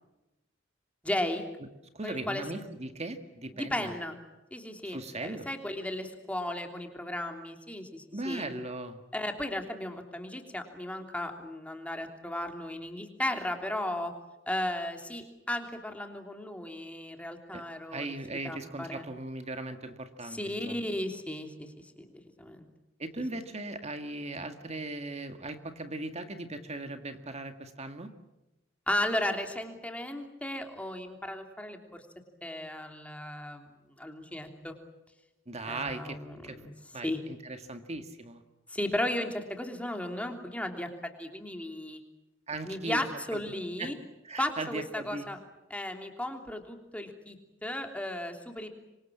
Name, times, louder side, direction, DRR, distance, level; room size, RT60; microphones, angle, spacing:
voice 1, 1.0-1.4 2.0-2.4 3.5-4.2 4.5-8.5 9.1-14.1 14.5-18.1 18.4-19.0 20.3-22.7 28.9-32.0 32.4-33.7 34.0-34.7 35.6-36.7 37.0-37.2 38.7-42.0 42.6-43.9 44.4-45.4 45.7-47.4 47.6-48.7, left 1 dB, 5° left, 4 dB, 3.2 m, -35 dB
voice 2, 1.9-3.9 4.8-5.5 8.1-9.0 17.5-17.6 17.9-20.8 23.0-28.1 35.5-36.6 36.9-38.4 42.5-43.1 43.3-43.4 43.8-43.9 44.2-45.3, right 2 dB, 35° right, 7 dB, 1.9 m, -38 dB
27.0 x 24.5 x 7.4 m, 0.97 s
head